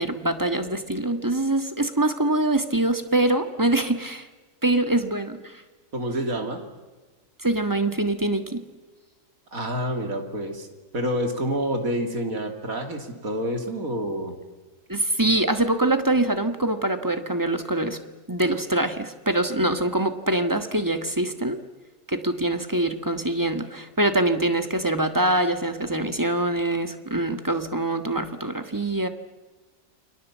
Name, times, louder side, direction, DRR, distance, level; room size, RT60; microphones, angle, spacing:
voice 1, 0.0-4.3 4.6-5.6 7.4-8.6 14.9-18.0 18.3-21.6 22.1-29.1, right 1 dB, 15° right, 8 dB, 1.3 m, -24 dB
voice 2, 5.9-6.6 9.5-10.7 10.9-14.4, equal, 60° right, 4 dB, 3.3 m, -28 dB
29.5 x 23.0 x 7.4 m, 1.3 s
omnidirectional pair, 1.7 m